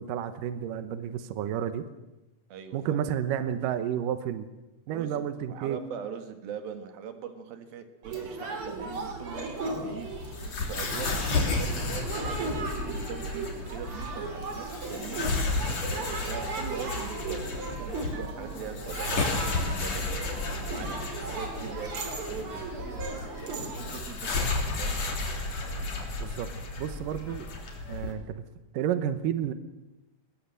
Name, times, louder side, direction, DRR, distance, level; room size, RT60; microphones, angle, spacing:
voice 1, 0.0-1.9 2.7-4.5 4.9-5.8 26.2-26.5 26.8-27.5 27.9-28.4 28.7-29.5, right 9 dB, 80° right, 11 dB, 1.9 m, -31 dB
voice 2, 2.5-3.0 4.9-10.1 10.7-15.3 15.9-20.1 20.5-23.1 23.7-25.0, right 7 dB, 60° right, 8 dB, 3.1 m, -42 dB
sound 1, 8.0-24.0, right 3 dB, 35° right, 3.1 m, -37 dB
sound 2, 10.0-28.1, left 3 dB, 40° left, 3.8 m, -33 dB
21.0 x 19.0 x 7.7 m, 1.0 s
omnidirectional pair, 5.3 m